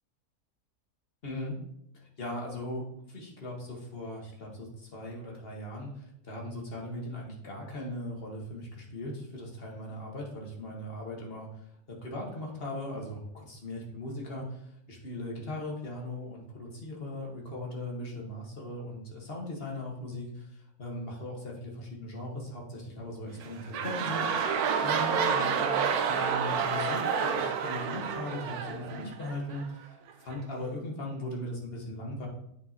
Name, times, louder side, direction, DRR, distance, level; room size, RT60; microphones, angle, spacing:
voice 1, 1.2-1.6 2.2-5.9 6.2-11.5 12.0-14.6 14.9-20.4 20.8-24.5 24.8-25.8 26.0-32.3, left 1 dB, 40° left, -2 dB, 1.6 m, -38 dB
sound 1, 23.3-29.6 30.3-30.4, right 6 dB, 75° right, 1.2 m, -29 dB
8.8 x 5.0 x 2.8 m, 0.76 s
omnidirectional pair, 1.6 m